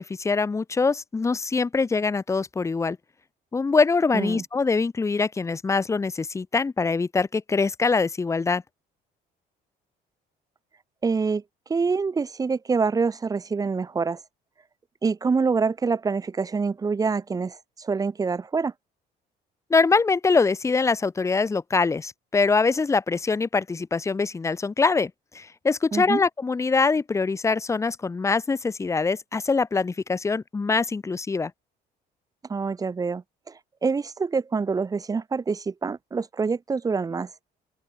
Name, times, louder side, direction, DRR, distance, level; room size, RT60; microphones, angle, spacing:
voice 1, 0.0-3.0 3.5-8.6 19.7-31.5, left 4 dB, 15° left, 0.7 m, -23 dB
voice 2, 4.1-4.4 11.0-11.4 11.7-14.2 15.0-18.7 25.9-26.2 32.5-37.3, right 4 dB, 20° right, 0.7 m, -26 dB
open air
cardioid pair, 110°, 17 cm